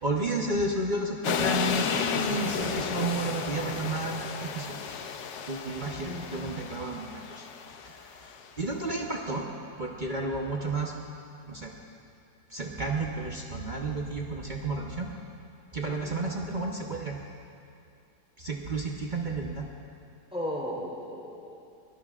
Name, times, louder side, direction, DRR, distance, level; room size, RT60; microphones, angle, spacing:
voice 1, 0.0-5.0 5.5-7.5 7.8-8.3 8.6-9.4 9.8-10.9 11.5-11.7 12.5-15.1 15.7-17.2 18.4-19.7, right 2 dB, 40° right, -1 dB, 0.7 m, -32 dB
sound 1, 1.2-8.4, left 7 dB, 75° left, 1.3 m, -32 dB
voice 2, 5.9-6.3 15.8-16.2 20.3-21.6, equal, 5° right, -6 dB, 3.2 m, -36 dB
22.0 x 16.5 x 2.4 m, 2.4 s
omnidirectional pair, 2.0 m